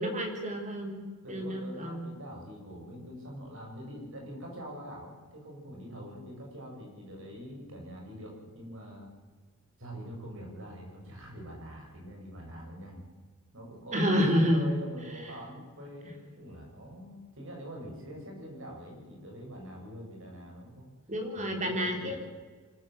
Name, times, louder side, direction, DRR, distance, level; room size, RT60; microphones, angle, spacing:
voice 1, 0.0-2.1 13.9-14.8 15.2-15.3 21.1-22.2, equal, 35° right, 3 dB, 3.7 m, -29 dB
voice 2, 1.2-9.1 9.8-13.0 13.5-20.9 21.4-22.2, equal, 60° right, 0 dB, 6.9 m, -44 dB
24.5 x 14.0 x 7.7 m, 1.4 s
head